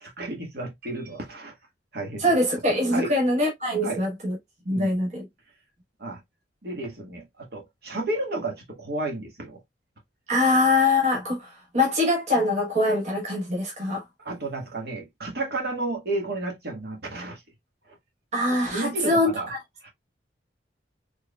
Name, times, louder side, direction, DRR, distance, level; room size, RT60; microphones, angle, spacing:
voice 1, 0.0-1.5 1.9-2.3 2.9-3.1 3.8-4.0 4.7-5.0 6.0-6.2 6.6-9.6 14.2-17.4 18.7-19.5 19.8-19.9, right 2 dB, 60° right, 1.5 m, -32 dB
voice 2, 2.2-4.3 4.7-5.2 10.3-14.0 18.3-19.3, left 2 dB, 40° right, 1.1 m, -23 dB
4.6 x 3.3 x 2.2 m
head